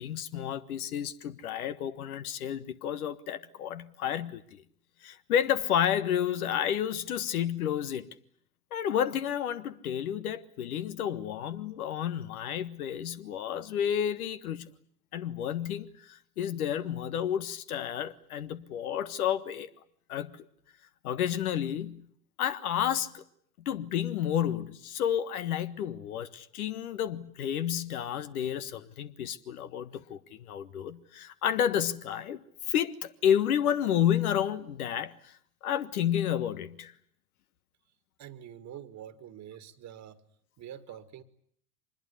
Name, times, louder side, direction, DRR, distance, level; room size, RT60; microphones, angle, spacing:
voice 1, 0.0-4.6 5.0-8.1 8.7-14.7 15.1-19.7 20.1-20.4 21.0-22.1 22.4-23.2 23.6-35.4 35.6-36.9, left 9 dB, 70° left, 1.5 m, -31 dB
voice 2, 38.2-40.2 40.6-41.2, right 10 dB, 40° right, 1.9 m, -45 dB
25.0 x 21.0 x 9.8 m
figure-of-eight pair, 80°, 45 cm